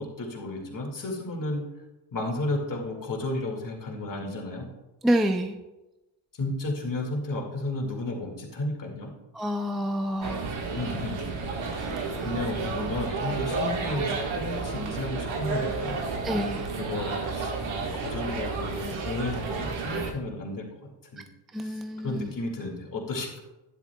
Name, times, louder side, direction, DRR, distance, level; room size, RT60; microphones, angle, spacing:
voice 1, 0.0-1.6 2.1-4.7 6.4-9.1 10.7-11.2 12.2-16.0 16.8-20.7 21.1-21.2 21.6-21.7 22.0-23.4, left 2 dB, 45° left, 0 dB, 2.1 m, -33 dB
voice 2, 5.0-5.6 9.3-10.5 11.6-12.3 16.2-16.7 21.5-22.3, equal, ahead, 5 dB, 0.3 m, -28 dB
sound 1, 10.2-20.1, right 4 dB, 85° right, 1.6 m, -31 dB
12.0 x 10.0 x 2.3 m, 1.0 s
cardioid pair, 130°, 46 cm